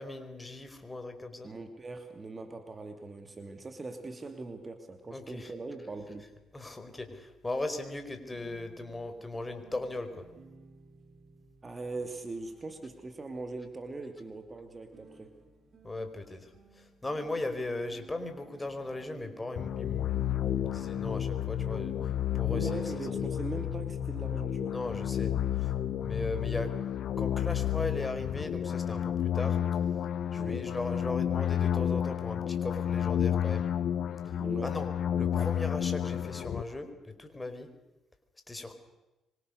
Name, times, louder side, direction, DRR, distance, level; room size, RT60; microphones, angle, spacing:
voice 1, 0.0-1.5 5.1-5.5 6.5-10.3 15.8-21.9 22.4-22.7 24.7-25.3 25.6-25.7 26.0-26.7 27.0-29.6 30.3-33.7 34.6-34.9 35.2-36.9 37.2-37.7 38.5-38.7, left 2 dB, 15° left, 7 dB, 5.0 m, -38 dB
voice 2, 1.4-6.3 11.6-15.4 22.5-24.8 30.4-30.7 34.4-34.7, right 3 dB, 30° right, 7 dB, 2.8 m, -41 dB
sound 1, 5.9-23.1, right 3 dB, 45° right, 6.4 m, -57 dB
sound 2, 19.6-36.6, left 9 dB, 65° left, 1.1 m, -31 dB
25.5 x 25.0 x 6.7 m, 1.0 s
supercardioid pair, 70°, 0 cm